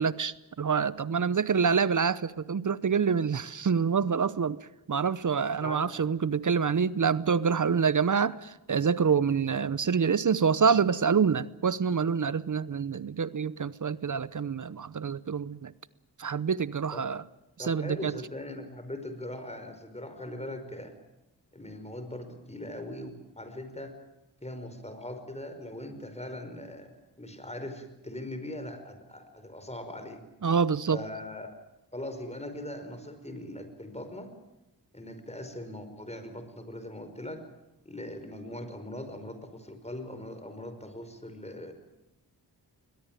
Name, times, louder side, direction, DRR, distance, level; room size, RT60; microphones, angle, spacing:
voice 1, 0.0-4.6 4.9-15.7 16.2-17.2 17.7-18.1 30.4-31.0, right 6 dB, 45° right, 18 dB, 0.8 m, -26 dB
voice 2, 17.6-20.9 21.5-23.9 24.4-26.9 27.2-30.2 30.9-31.5 31.9-34.3 34.9-37.4 37.8-41.7, left 1 dB, 15° left, 8 dB, 5.2 m, -40 dB
21.0 x 21.0 x 9.1 m, 0.97 s
cardioid pair, 55°, 41 cm